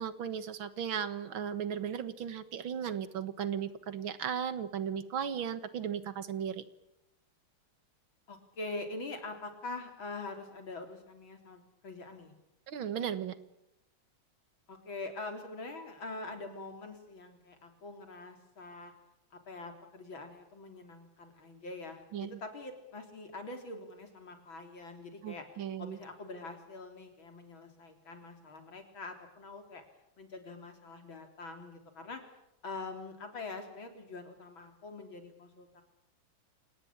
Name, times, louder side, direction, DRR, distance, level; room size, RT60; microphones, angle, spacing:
voice 1, 0.0-6.6 12.7-13.4 22.1-22.4 25.2-26.0, right 8 dB, 80° right, 13 dB, 2.2 m, -36 dB
voice 2, 8.3-12.3 14.7-18.9 19.5-25.5 25.8-29.8 30.2-32.2 32.6-35.8, left 3 dB, 75° left, 5 dB, 4.4 m, -44 dB
27.5 x 19.0 x 8.8 m, 0.84 s
omnidirectional pair, 2.2 m